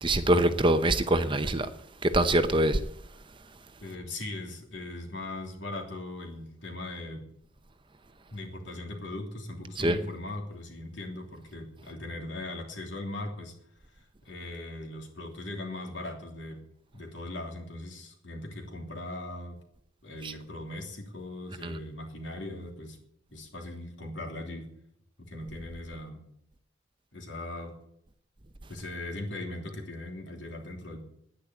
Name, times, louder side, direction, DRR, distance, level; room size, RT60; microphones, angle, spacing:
voice 1, 0.0-1.7 2.0-2.8 9.8-10.0 20.2-20.3 21.6-21.7, right 1 dB, 25° right, 0.7 m, -24 dB
voice 2, 3.8-7.2 8.3-13.5 13.9-16.6 16.9-19.6 20.0-23.0 23.3-24.7 25.2-26.2 27.1-27.7 28.7-31.0, left 2 dB, 65° left, 3.0 m, -39 dB
10.5 x 10.0 x 8.3 m
head